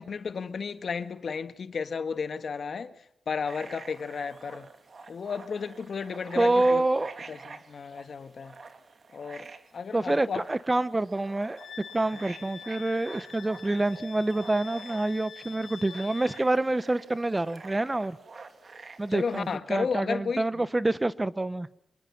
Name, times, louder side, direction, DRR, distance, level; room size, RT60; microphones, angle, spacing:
voice 1, 0.0-2.9 3.3-4.7 5.1-6.8 7.3-8.5 9.1-10.4 19.1-20.6, left 5 dB, 65° left, 1.5 m, -33 dB
sound 1, 3.4-19.6, right 4 dB, 55° right, 2.6 m, -48 dB
voice 2, 6.4-7.1 9.9-11.6 11.9-18.2 19.0-21.7, right 2 dB, 20° right, 1.0 m, -27 dB
Wind instrument woodwind instrument, 11.6-16.5, left 7 dB, 85° left, 2.7 m, -45 dB
26.5 x 21.0 x 5.9 m
cardioid pair, 70°, 0 cm